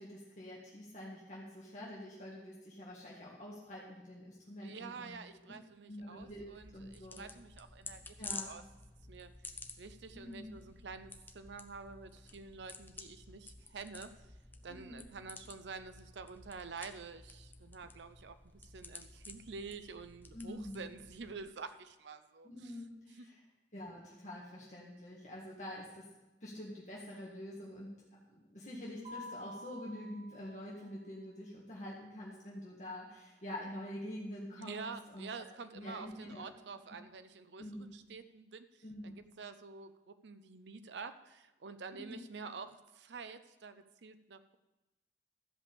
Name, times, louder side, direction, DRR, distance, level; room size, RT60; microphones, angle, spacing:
voice 1, 0.0-5.2 5.9-6.4 6.7-7.2 8.2-8.5 10.1-10.6 14.7-15.1 20.3-20.9 22.4-23.4 23.7-26.1 26.4-27.9 28.3-35.3 35.8-36.5 37.0-37.1 37.6-37.9 38.8-39.2 41.9-42.2, left 1 dB, 40° left, -5 dB, 1.7 m, -46 dB
voice 2, 4.6-8.6 9.1-9.3 9.8-14.3 14.6-22.8 23.2-23.3 34.6-44.6, right 4 dB, 80° right, 10 dB, 0.6 m, -48 dB
sound 1, 6.2-21.4, left 3 dB, 10° left, 0.6 m, -52 dB
Mallet percussion, 29.0-31.1, left 1 dB, 40° right, 3.9 m, -50 dB
13.5 x 5.3 x 6.9 m, 1.0 s
head